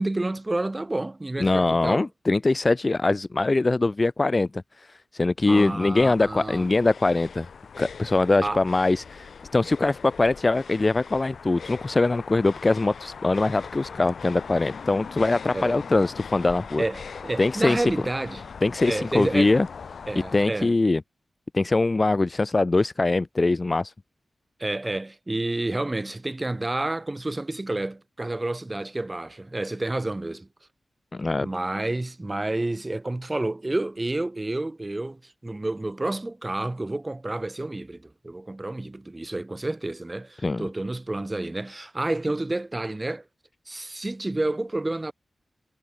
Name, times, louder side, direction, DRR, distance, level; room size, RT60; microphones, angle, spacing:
voice 1, 0.0-2.1 5.5-6.7 8.4-8.6 15.5-15.8 16.8-18.4 18.8-19.5 20.1-20.7 24.6-30.5 31.4-43.2 43.7-45.1, right 2 dB, 20° right, 4.7 m, -29 dB
voice 2, 1.4-4.6 5.1-7.5 7.8-9.3 9.5-16.8 17.4-17.8 18.6-19.7 20.3-21.0 21.5-23.9 31.1-31.5 40.4-40.7, left 2 dB, 30° left, 1.0 m, -22 dB
sound 1, 6.0-20.5, left 6 dB, 75° left, 2.5 m, -40 dB
wide cardioid pair, 100°, 0 cm